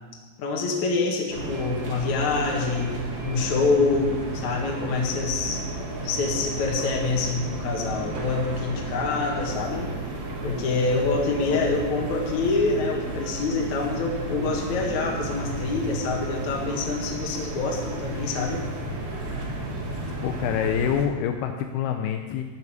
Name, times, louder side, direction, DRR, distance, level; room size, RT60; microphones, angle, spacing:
voice 1, 0.4-2.9 3.2-5.6 6.0-9.9 10.4-18.6, left 4 dB, 55° left, -1 dB, 2.7 m, -26 dB
sound 1, 1.3-21.1, right 2 dB, 40° right, 1.8 m, -32 dB
voice 2, 20.2-22.4, left 9 dB, 80° left, 5 dB, 2.5 m, -26 dB
16.0 x 5.5 x 9.7 m, 1.4 s
omnidirectional pair, 4.9 m